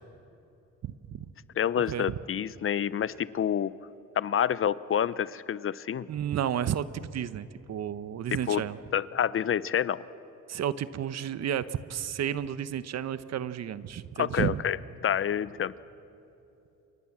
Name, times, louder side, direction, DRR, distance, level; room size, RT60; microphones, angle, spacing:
voice 1, 0.8-1.3 1.9-2.1 6.1-8.8 10.5-14.6, right 9 dB, 60° right, 14 dB, 1.0 m, -32 dB
voice 2, 1.6-3.7 4.2-6.1 8.5-8.6 8.9-10.0 14.2-14.8 15.0-15.7, left 9 dB, 45° left, 18 dB, 0.7 m, -28 dB
28.0 x 23.5 x 7.4 m, 2.9 s
cardioid pair, 90°, 30 cm